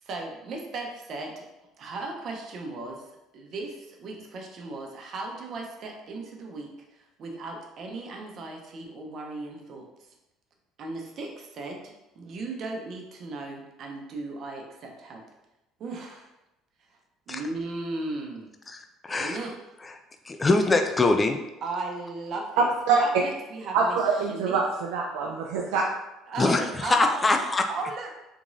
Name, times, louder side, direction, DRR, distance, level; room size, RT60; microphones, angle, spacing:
voice 1, 0.0-1.4 1.8-3.0 3.3-9.9 10.8-15.2 15.8-16.3 17.3-18.5 19.1-19.5 21.6-22.7 23.0-24.0 24.3-24.6 26.3-27.4 27.7-28.1, right 3 dB, 55° right, 2 dB, 0.7 m, -36 dB
voice 2, 18.7-19.4 20.3-21.4 26.4-27.7, left 2 dB, 25° left, 5 dB, 0.4 m, -23 dB
voice 3, 23.7-25.8, right 5 dB, 85° right, -1 dB, 0.4 m, -25 dB
3.6 x 3.0 x 2.6 m, 0.96 s
supercardioid pair, 85°, 0 cm